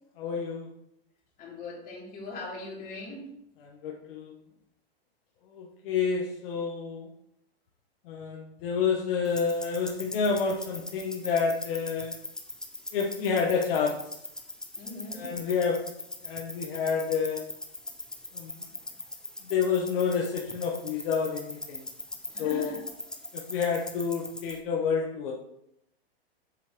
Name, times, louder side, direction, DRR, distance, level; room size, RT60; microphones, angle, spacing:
voice 1, 0.2-0.7 3.6-4.4 5.5-7.1 8.0-12.2 12.9-14.2 15.1-17.6 18.3-18.6 19.4-21.9 22.4-22.7 23.3-25.3, left 6 dB, 60° left, -1 dB, 1.2 m, -29 dB
voice 2, 1.4-3.3 14.8-15.3 22.3-22.8, left 2 dB, 25° left, -4 dB, 3.0 m, -40 dB
sound 1, 9.2-24.6, left 2 dB, ahead, 0.5 m, -41 dB
8.3 x 7.4 x 3.0 m, 0.78 s
hypercardioid pair, 130°, 31 cm